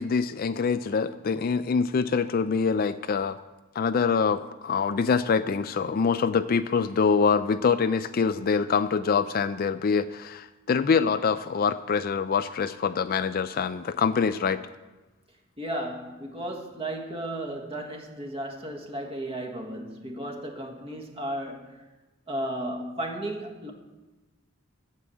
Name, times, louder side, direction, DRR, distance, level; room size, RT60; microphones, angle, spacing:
voice 1, 0.0-3.4 3.8-14.6, left 5 dB, 45° left, 12 dB, 0.4 m, -25 dB
voice 2, 15.6-21.8 22.3-23.7, right 1 dB, 25° right, 3 dB, 1.5 m, -34 dB
8.4 x 7.6 x 8.3 m, 1.1 s
head